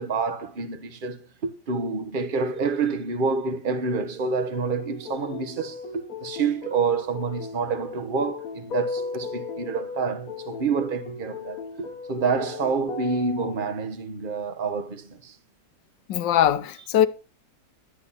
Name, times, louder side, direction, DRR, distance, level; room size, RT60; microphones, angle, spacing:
voice 1, 0.0-15.4, right 4 dB, 30° right, 1.3 m, -28 dB
sound 1, 4.5-13.6, left 3 dB, 55° left, 1.4 m, -36 dB
voice 2, 16.1-17.1, left 11 dB, 75° left, 1.6 m, -21 dB
12.0 x 9.8 x 4.2 m
omnidirectional pair, 2.0 m